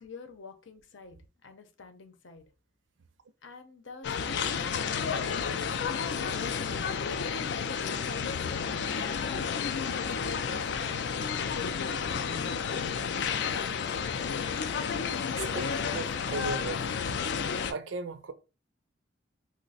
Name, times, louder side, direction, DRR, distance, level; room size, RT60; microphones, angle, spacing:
voice 1, 0.0-2.4 3.4-9.2 10.0-11.0 11.5-14.7, left 4 dB, 75° left, 0.7 m, -47 dB
sound 1, 4.0-17.7, left 6 dB, 60° left, 0.3 m, -31 dB
voice 2, 15.4-17.0 17.7-18.3, right 3 dB, 75° right, 0.5 m, -37 dB
3.1 x 2.1 x 4.0 m
head